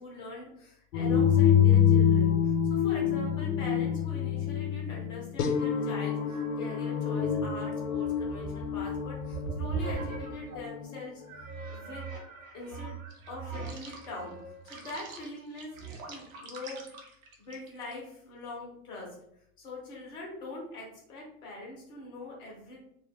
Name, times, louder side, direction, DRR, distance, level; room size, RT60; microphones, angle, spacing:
voice 1, 0.0-11.2 11.7-12.1 12.5-13.0 13.3-14.4 14.6-15.7 16.1-16.8 17.4-19.1 19.6-22.8, left 2 dB, 10° left, -3 dB, 0.3 m, -42 dB
sound 1, 0.9-10.8, left 8 dB, 80° left, 0.5 m, -26 dB
sound 2, 5.8-10.7 11.3-17.9, right 3 dB, 65° right, 0.7 m, -40 dB
2.1 x 2.0 x 3.3 m, 0.73 s
hypercardioid pair, 105°, 46 cm